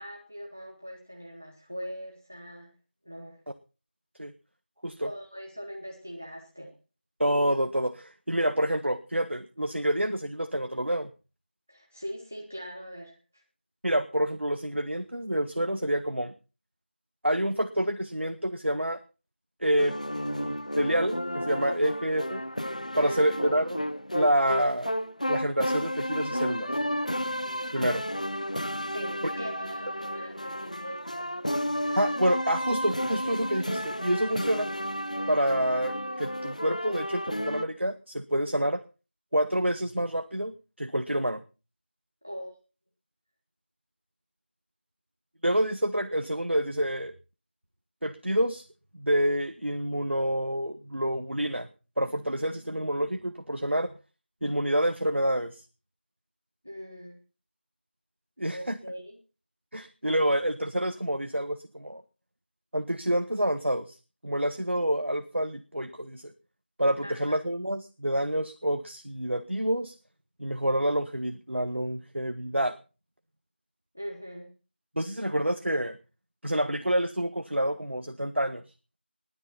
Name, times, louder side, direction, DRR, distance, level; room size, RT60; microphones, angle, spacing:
voice 1, 0.0-2.7 3.0-3.4 5.0-6.7 11.7-13.4 22.9-23.3 28.9-31.5 42.2-42.5 56.6-57.2 58.5-59.2 67.0-67.4 73.9-74.5, equal, 10° right, 1 dB, 1.1 m, -41 dB
voice 2, 7.2-11.1 13.8-16.3 17.2-19.0 19.6-22.4 23.0-23.8 24.1-24.9 25.3-26.7 27.7-28.0 32.0-34.7 35.3-38.8 39.3-41.4 45.4-47.1 48.0-48.6 49.0-51.7 52.0-53.9 54.4-55.7 58.4-58.8 59.7-62.0 62.7-64.0 64.2-66.3 66.8-69.9 70.4-72.7 75.0-76.0 76.4-78.6, right 1 dB, 80° right, 9 dB, 1.6 m, -28 dB
sound 1, 19.8-37.6, equal, 40° left, 0.9 m, -32 dB
20.0 x 9.7 x 5.6 m, 0.35 s
figure-of-eight pair, 180°, 6 cm